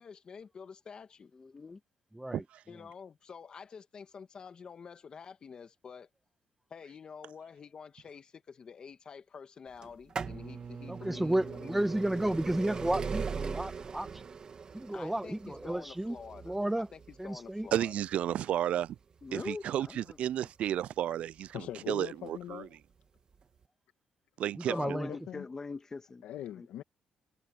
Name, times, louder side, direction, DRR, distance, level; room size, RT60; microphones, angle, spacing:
voice 1, 0.0-1.3 2.7-6.1 6.7-11.8 14.9-17.9 24.7-25.2, left 6 dB, 40° left, 1.8 m, -48 dB
voice 2, 1.4-1.8 19.2-20.2 24.7-26.2 26.6-26.7, left 4 dB, 25° left, 1.9 m, -42 dB
voice 3, 2.1-2.4 10.9-14.1 14.7-16.2 16.4-16.9 17.2-17.7 24.6-25.1, right 1 dB, 5° right, 1.3 m, -32 dB
sound 1, 9.8-21.5 22.3-22.4 23.3-23.4 23.6-23.7, right 5 dB, 40° right, 2.5 m, -40 dB
voice 4, 17.7-19.0 19.3-22.7 24.4-25.0, right 11 dB, 70° right, 0.3 m, -32 dB
voice 5, 21.5-22.7 24.8-25.5 26.2-26.8, left 12 dB, 85° left, 2.1 m, -42 dB
cardioid pair, 125°, 2 cm